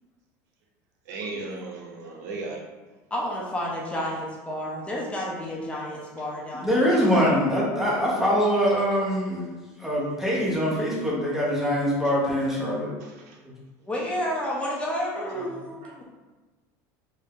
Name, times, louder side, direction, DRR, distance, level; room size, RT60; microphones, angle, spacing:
voice 1, 1.1-2.6 12.5-12.6 13.0-13.4 15.8-16.0, right 3 dB, 90° right, 1 dB, 0.7 m, -37 dB
voice 2, 3.1-7.4 13.8-16.0, equal, 15° left, -3 dB, 0.6 m, -31 dB
voice 3, 6.6-9.5 9.8-13.0, equal, 5° right, -6 dB, 1.0 m, -23 dB
3.5 x 2.6 x 3.6 m, 1.2 s
cardioid pair, 145°, 9 cm